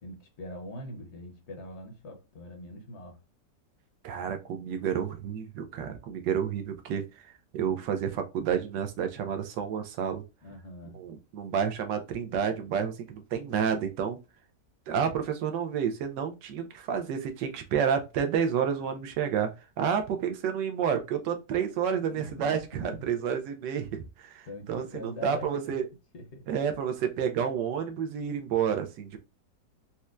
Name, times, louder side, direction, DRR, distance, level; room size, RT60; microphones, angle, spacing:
voice 1, 0.0-3.2 10.4-11.0 22.1-23.0 24.4-25.8 26.1-26.5, left 1 dB, 55° left, 0.8 m, -43 dB
voice 2, 4.0-10.2 10.9-14.2 14.9-19.5 19.8-25.8 26.5-29.2, right 7 dB, 85° right, 1.3 m, -30 dB
4.2 x 2.2 x 2.4 m
omnidirectional pair, 1.9 m